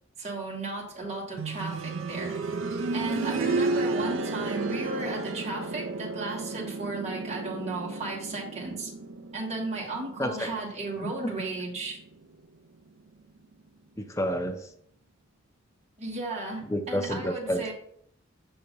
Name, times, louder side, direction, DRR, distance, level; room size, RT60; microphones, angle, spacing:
voice 1, 0.2-2.4 2.9-8.9 9.3-12.0 16.0-17.7, right 3 dB, 35° right, -3 dB, 1.5 m, -35 dB
sound 1, 1.4-12.1 13.5-13.6, right 3 dB, 75° right, 0.5 m, -33 dB
voice 2, 10.2-10.5 11.0-11.3 14.0-14.7 16.6-17.7, equal, 15° left, 6 dB, 0.5 m, -30 dB
6.4 x 2.9 x 5.1 m, 0.66 s
head